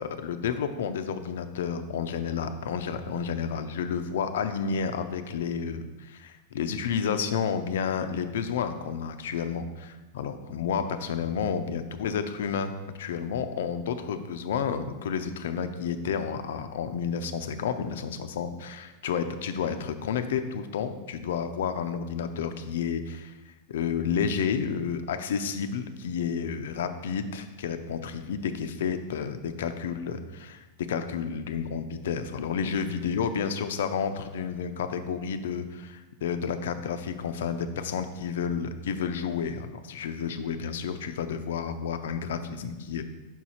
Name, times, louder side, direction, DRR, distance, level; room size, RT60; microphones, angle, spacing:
voice 1, 0.0-12.7 13.0-23.3 23.7-30.6 30.9-43.0, left 7 dB, 80° left, 9 dB, 0.5 m, -31 dB
5.7 x 4.5 x 4.2 m, 1.2 s
supercardioid pair, 175°, 0 cm